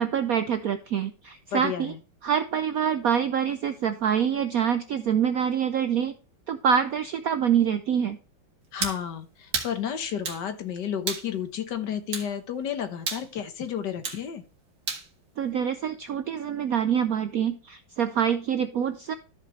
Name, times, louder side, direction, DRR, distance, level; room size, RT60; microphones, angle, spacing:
voice 1, 0.0-1.9 2.2-6.1 6.5-8.2 15.4-19.1, right 8 dB, 70° right, 10 dB, 0.8 m, -25 dB
voice 2, 1.5-2.0 8.7-14.4, left 8 dB, 60° left, 9 dB, 1.6 m, -32 dB
sound 1, 8.8-9.0 9.5-9.7 10.3-10.4 11.1-11.3 12.1-12.3 13.1-13.3 14.0-14.2 14.9-15.1, right 4 dB, 50° right, 2.2 m, -30 dB
14.0 x 5.3 x 3.1 m, 0.35 s
omnidirectional pair, 2.2 m